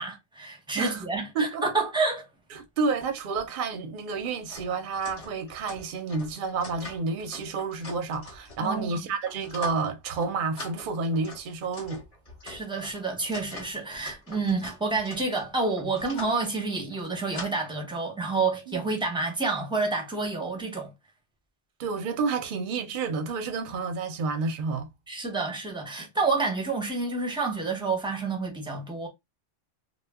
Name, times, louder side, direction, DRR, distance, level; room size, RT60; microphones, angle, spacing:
voice 1, 0.0-2.3 8.6-9.0 12.4-20.9 25.1-29.1, right 3 dB, 5° right, 0.4 m, -29 dB
voice 2, 2.5-12.0 18.7-18.8 21.8-24.9, right 4 dB, 60° right, 0.6 m, -30 dB
sound 1, 3.0-3.1 3.4-3.5 4.1-8.8 9.2-9.9 10.2-10.3 10.6-16.4 16.9-17.5, left 2 dB, 35° left, 0.7 m, -44 dB
2.2 x 2.0 x 3.3 m
omnidirectional pair, 1.3 m